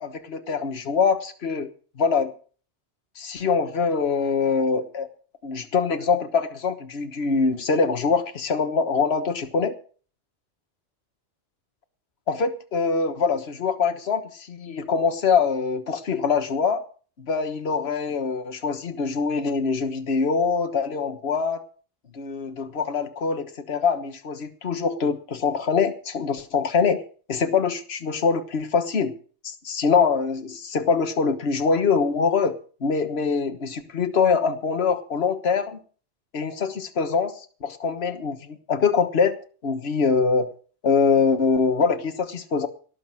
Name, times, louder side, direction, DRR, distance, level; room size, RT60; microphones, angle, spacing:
voice 1, 0.0-1.7 2.0-2.3 3.2-5.1 5.4-9.7 12.3-16.8 17.2-21.6 22.1-27.0 27.3-29.1 29.4-35.8 36.3-39.4 39.6-40.5 40.8-42.7, left 5 dB, 60° left, 8 dB, 1.6 m, -24 dB
18.0 x 6.8 x 7.6 m, 0.41 s
omnidirectional pair, 1.2 m